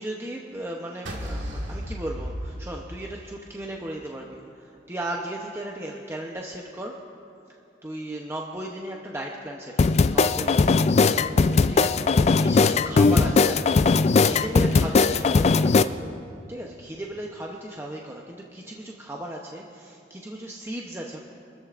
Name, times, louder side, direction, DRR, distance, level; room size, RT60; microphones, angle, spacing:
voice 1, 0.0-7.0 7.8-10.7 11.7-15.8 16.5-21.2, right 1 dB, 15° right, -1 dB, 0.7 m, -36 dB
sound 1, 1.1-3.4, equal, 85° right, 1.8 m, -33 dB
sound 2, 9.8-15.8, left 4 dB, 35° left, 0.3 m, -19 dB
25.5 x 13.5 x 2.5 m, 2.6 s
head